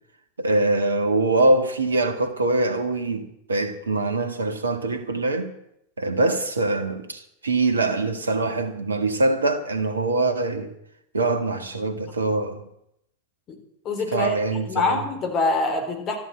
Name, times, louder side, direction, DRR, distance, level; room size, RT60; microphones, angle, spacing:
voice 1, 0.4-5.5 6.0-10.7 11.1-12.7 14.1-15.0, right 2 dB, 75° right, 1.8 m, -23 dB
voice 2, 13.8-16.2, left 3 dB, 30° left, 3.9 m, -25 dB
13.0 x 11.5 x 7.9 m
figure-of-eight pair, 90°, 0 cm